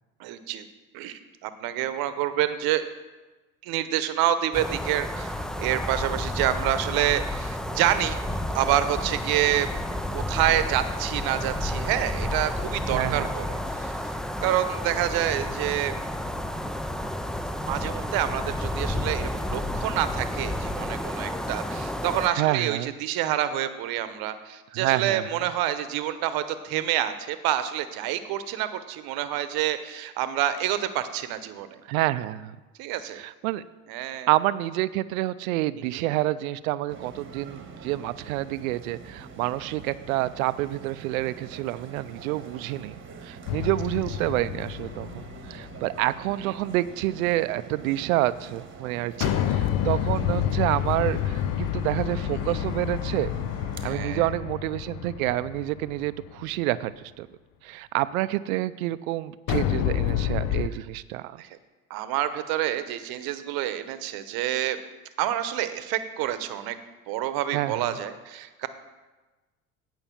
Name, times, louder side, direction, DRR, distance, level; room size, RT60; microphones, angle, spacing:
voice 1, 0.2-0.6 0.9-2.8 3.6-5.3 5.6-8.2 8.5-9.7 10.1-13.9 14.4-15.9 17.7-31.8 32.8-33.2 33.9-34.3 35.8-36.1 46.4-46.5 49.2-49.5 52.3-52.4 53.8-54.3 61.4-61.5 61.9-64.8 65.2-66.8 67.1-68.7, right 12 dB, 60° right, 12 dB, 0.9 m, -28 dB
sound 1, 4.5-22.3, left 1 dB, ahead, 0.4 m, -31 dB
voice 2, 12.9-13.3 22.3-22.9 24.7-25.3 31.9-32.6 33.1-33.6 34.3-42.9 43.2-53.3 53.8-57.3 57.6-61.4 67.5-67.9, right 16 dB, 80° right, 16 dB, 0.5 m, -28 dB
sound 2, 36.9-53.9, right 5 dB, 30° right, 1.3 m, -44 dB
sound 3, 43.5-46.0 49.2-56.4 59.5-60.7, left 11 dB, 50° left, 0.6 m, -28 dB
9.0 x 5.5 x 7.3 m, 1.2 s
hypercardioid pair, 85°, 41 cm